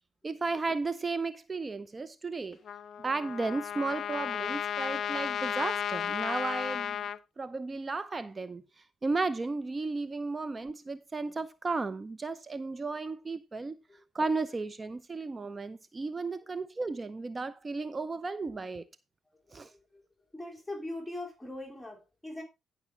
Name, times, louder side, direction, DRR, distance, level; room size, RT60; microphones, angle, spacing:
voice 1, 0.2-2.6 3.0-7.0 7.4-13.8 14.1-18.9 19.5-19.7, right 3 dB, 30° right, 0.6 m, -34 dB
Trumpet, 2.7-7.2, left 8 dB, 55° left, 0.6 m, -34 dB
voice 2, 19.3-20.0 20.3-22.4, left 1 dB, 5° left, 2.9 m, -42 dB
16.5 x 6.2 x 3.3 m
cardioid pair, 90°, 0 cm